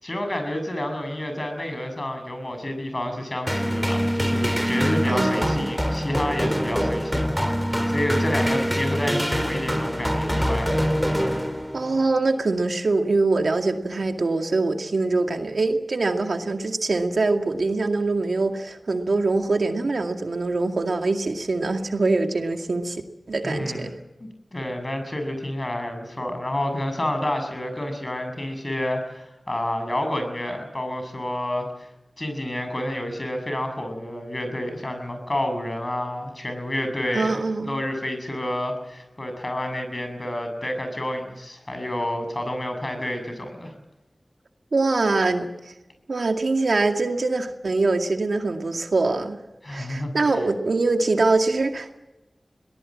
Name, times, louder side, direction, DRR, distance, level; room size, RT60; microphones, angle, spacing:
voice 1, 0.0-10.8 23.4-23.9 24.2-31.9 32.2-43.7 49.6-50.1, left 1 dB, 40° left, 7 dB, 7.2 m, -29 dB
sound 1, 3.5-12.0, equal, ahead, 3.9 m, -24 dB
voice 2, 5.1-5.7 11.7-23.0 23.3-23.9 37.1-37.8 44.7-45.7 46.1-49.4 49.7-52.0, right 3 dB, 80° right, 4 dB, 2.2 m, -23 dB
23.0 x 19.0 x 7.6 m, 0.99 s
cardioid pair, 40°, 0 cm